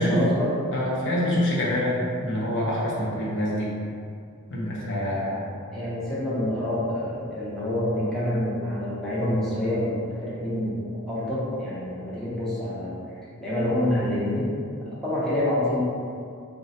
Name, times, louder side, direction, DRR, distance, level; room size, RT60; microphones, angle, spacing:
voice 1, 0.0-0.5 5.7-13.0 13.4-14.5 14.9-15.8, left 1 dB, ahead, -10 dB, 0.7 m, -27 dB
voice 2, 0.7-3.7 4.5-5.4, left 1 dB, 60° left, -5 dB, 0.6 m, -26 dB
3.6 x 2.1 x 2.6 m, 2.3 s
head